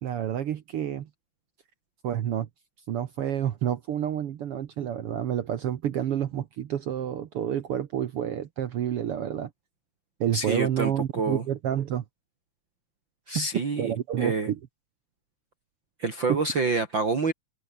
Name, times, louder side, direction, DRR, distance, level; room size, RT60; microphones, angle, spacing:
voice 1, 0.0-1.1 2.0-2.5 2.9-9.5 10.2-12.0 13.4-13.5 13.8-14.6 16.3-16.4, right 10 dB, 60° right, 1.6 m, -29 dB
voice 2, 10.3-11.4 13.3-14.5 16.0-17.3, right 4 dB, 35° right, 3.1 m, -27 dB
omnidirectional pair, 3.7 m